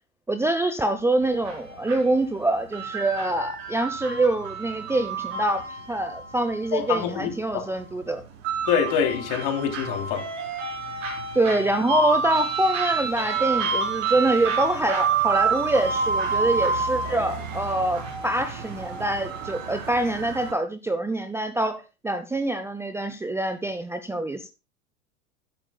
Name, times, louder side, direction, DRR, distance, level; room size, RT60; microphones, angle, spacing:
voice 1, 0.3-8.2 11.3-24.5, right 2 dB, 5° right, 0.7 m, -25 dB
sound 1, 1.2-20.5, right 5 dB, 60° right, 4.1 m, -29 dB
voice 2, 6.7-7.6 8.7-10.2, left 8 dB, 50° left, 3.2 m, -25 dB
12.0 x 10.0 x 2.3 m
hypercardioid pair, 95°, 42 cm